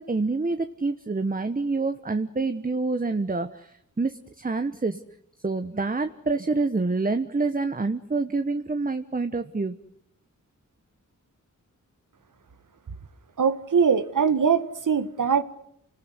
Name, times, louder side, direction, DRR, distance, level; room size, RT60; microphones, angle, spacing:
voice 1, 0.0-5.0 5.4-9.7, right 3 dB, 25° right, 9 dB, 1.2 m, -27 dB
voice 2, 13.4-15.4, right 6 dB, 80° right, 12 dB, 1.8 m, -22 dB
28.5 x 19.5 x 9.8 m, 0.73 s
wide cardioid pair, 75°, 31 cm